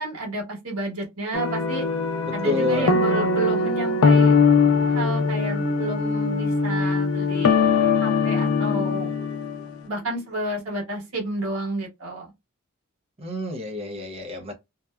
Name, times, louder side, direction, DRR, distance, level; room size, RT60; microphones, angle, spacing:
voice 1, 0.0-1.9 2.3-4.4 4.9-7.6 8.0-9.1 9.8-12.3, right 2 dB, 80° right, 1.3 m, -30 dB
sound 1, 1.3-9.7, left 5 dB, 80° left, 0.5 m, -21 dB
sound 2, 1.3-10.5, equal, 30° left, 0.7 m, -35 dB
voice 2, 2.4-2.9 13.2-14.5, left 3 dB, 30° right, 0.6 m, -28 dB
2.8 x 2.2 x 2.3 m
head